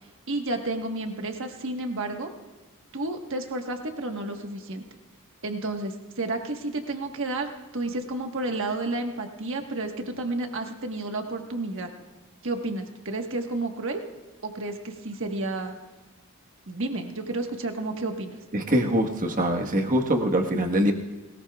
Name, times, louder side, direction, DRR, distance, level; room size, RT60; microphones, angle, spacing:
voice 1, 0.3-2.3 2.9-4.9 5.4-11.9 12.4-14.0 14.4-15.7 16.7-18.4, right 2 dB, 60° right, 4 dB, 1.4 m, -31 dB
voice 2, 18.5-20.9, right 1 dB, 35° right, 3 dB, 1.4 m, -23 dB
20.5 x 19.0 x 2.4 m, 1.2 s
head